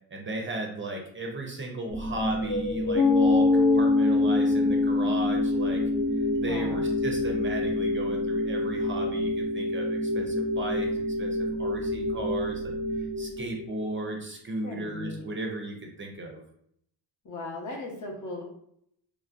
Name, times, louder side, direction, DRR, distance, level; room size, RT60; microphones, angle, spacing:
voice 1, 0.1-5.8 6.4-16.4, right 2 dB, 30° right, 1 dB, 0.5 m, -35 dB
sound 1, 1.9-13.9, left 1 dB, 85° left, 1.1 m, -30 dB
Piano, 2.9-10.2, left 3 dB, 15° left, 0.8 m, -26 dB
voice 2, 6.4-6.8 14.6-15.2 17.2-18.4, left 2 dB, 45° left, 0 dB, 0.9 m, -37 dB
3.2 x 2.4 x 2.4 m, 0.70 s
cardioid pair, 95°, 42 cm